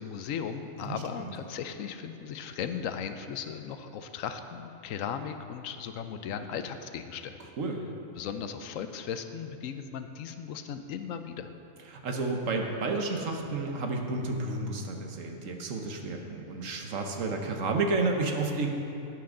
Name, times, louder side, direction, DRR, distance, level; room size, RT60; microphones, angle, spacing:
voice 1, 0.0-7.4 8.2-11.5, left 7 dB, 75° left, 9 dB, 0.9 m, -37 dB
voice 2, 0.8-1.3 7.6-7.8 11.9-18.7, right 3 dB, 70° right, 3 dB, 1.3 m, -31 dB
11.5 x 9.3 x 3.8 m, 2.8 s
omnidirectional pair, 1.4 m